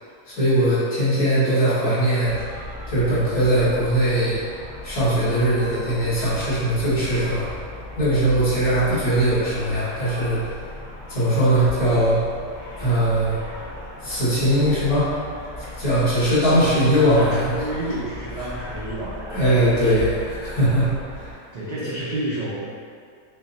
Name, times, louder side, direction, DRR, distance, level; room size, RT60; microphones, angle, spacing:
voice 1, 0.3-2.4 2.9-4.4 4.8-7.5 8.0-10.4 11.1-12.2 12.8-13.4 14.0-15.1 15.8-17.5 18.4-18.5 19.3-21.3 21.8-21.9, right 1 dB, 80° left, -11 dB, 1.8 m, -20 dB
sound 1, 2.2-21.3, left 2 dB, 35° left, 1.0 m, -36 dB
voice 2, 16.5-20.1 21.5-22.6, right 1 dB, 75° right, -9 dB, 0.3 m, -30 dB
5.8 x 2.0 x 2.6 m, 2.2 s
omnidirectional pair, 1.5 m